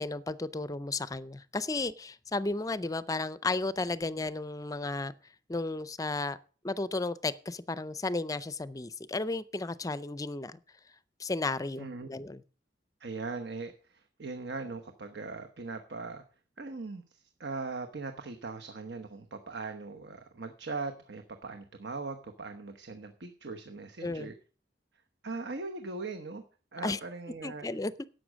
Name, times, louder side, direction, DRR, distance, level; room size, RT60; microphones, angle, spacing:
voice 1, 0.0-5.1 5.5-6.4 6.6-10.6 11.2-12.4 24.0-24.3 26.8-27.0 27.4-27.9, left 3 dB, 20° left, 17 dB, 0.4 m, -33 dB
voice 2, 11.8-12.1 13.0-16.2 16.6-24.3 25.2-26.4 26.7-27.7, right 3 dB, 70° right, 6 dB, 1.0 m, -40 dB
11.0 x 7.8 x 6.3 m, 0.39 s
head